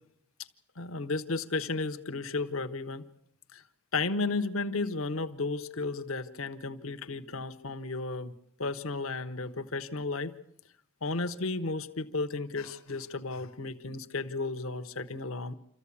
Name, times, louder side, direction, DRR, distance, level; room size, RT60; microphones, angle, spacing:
voice 1, 0.8-3.1 3.5-3.6 3.9-8.3 8.6-10.3 11.0-15.5, left 3 dB, 75° left, 9 dB, 1.0 m, -33 dB
27.0 x 14.5 x 8.5 m, 0.73 s
head